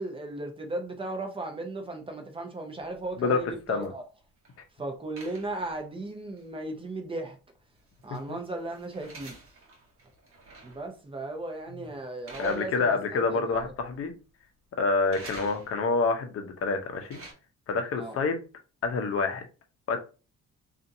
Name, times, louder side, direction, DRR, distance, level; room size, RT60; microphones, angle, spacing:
voice 1, 0.0-4.0 4.7-7.4 8.0-9.3 10.6-13.7 17.9-18.2, right 2 dB, 15° right, 0.7 m, -36 dB
sound 1, 2.9-4.6 5.2-6.1 6.4-6.5 7.7-10.9 11.3-11.6 12.3-13.2 13.5-14.1 15.1-16.0 16.8-17.3, right 2 dB, 45° right, 1.0 m, -49 dB
voice 2, 12.4-14.1 14.8-17.2 17.7-18.4 18.8-19.4 19.9-20.0, left 4 dB, 50° left, 0.7 m, -27 dB
2.7 x 2.5 x 2.6 m
cardioid pair, 90°, 30 cm